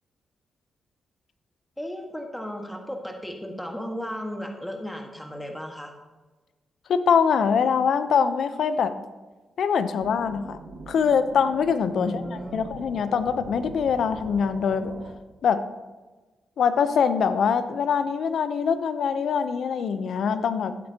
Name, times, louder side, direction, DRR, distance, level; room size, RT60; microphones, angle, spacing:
voice 1, 1.8-5.9 11.9-12.6, equal, 5° left, 2 dB, 1.6 m, -35 dB
voice 2, 6.9-8.9 9.6-10.6 10.9-15.0 15.4-15.6 16.6-20.8, left 6 dB, 70° left, 11 dB, 0.7 m, -23 dB
sound 1, 10.0-15.1, right 4 dB, 75° right, 1.2 m, -42 dB
14.5 x 7.7 x 2.9 m, 1.2 s
hypercardioid pair, 40°, 0 cm